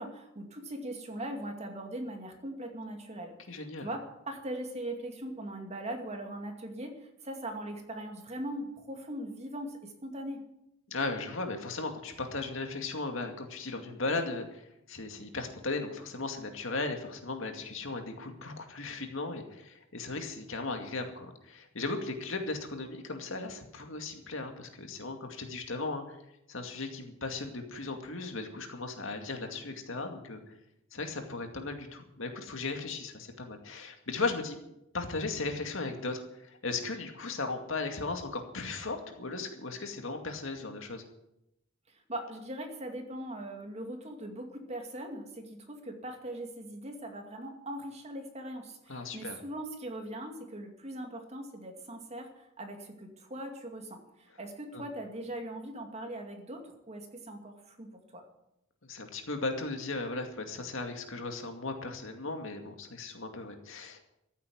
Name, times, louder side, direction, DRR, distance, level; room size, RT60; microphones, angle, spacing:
voice 1, 0.0-10.5 41.9-58.2, right 1 dB, 30° right, 4 dB, 2.3 m, -40 dB
voice 2, 3.5-3.9 10.9-26.2 26.5-30.4 30.9-34.6 34.9-41.0 48.9-49.4 54.7-54.8 58.8-64.0, left 3 dB, 65° left, 5 dB, 2.3 m, -37 dB
14.5 x 8.5 x 9.4 m, 0.84 s
head